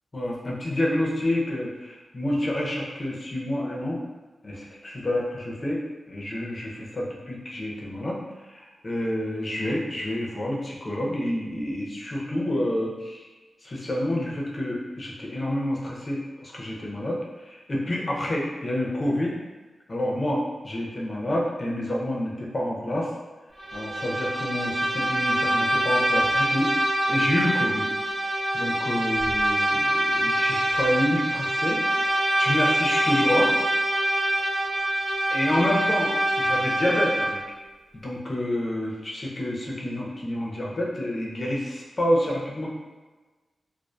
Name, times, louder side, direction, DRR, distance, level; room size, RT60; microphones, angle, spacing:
voice 1, 0.1-4.0 4.4-5.8 6.1-13.3 13.6-19.3 19.9-23.1 23.7-26.7 27.1-27.9 28.5-33.6 35.3-36.1 36.4-37.4 38.0-42.7, left 1 dB, 30° left, -3 dB, 0.5 m, -28 dB
Bowed string instrument, 23.6-37.5, right 1 dB, 40° right, 0.7 m, -25 dB
2.5 x 2.3 x 2.2 m, 1.3 s
wide cardioid pair, 130°, 0 cm